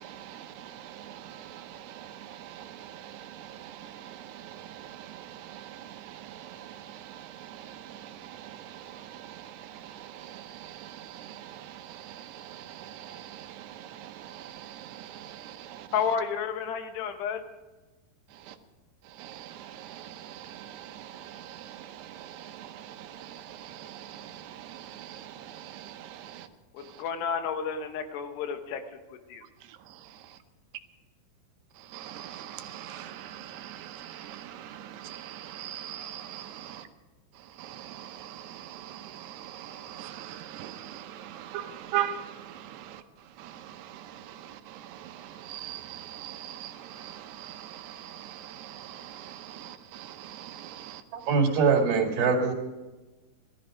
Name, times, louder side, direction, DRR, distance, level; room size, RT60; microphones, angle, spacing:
voice 1, 0.0-15.9 18.5-18.6 19.2-26.5 31.9-36.8 37.6-43.0 43.4-51.0, right 11 dB, 85° right, 3.0 m, -42 dB
voice 2, 15.9-17.4 26.7-28.8 29.1-29.4, left 7 dB, 85° left, 3.3 m, -31 dB
voice 3, 51.1-52.5, right 5 dB, 70° right, 4.0 m, -23 dB
17.5 x 13.5 x 5.1 m
omnidirectional pair, 4.7 m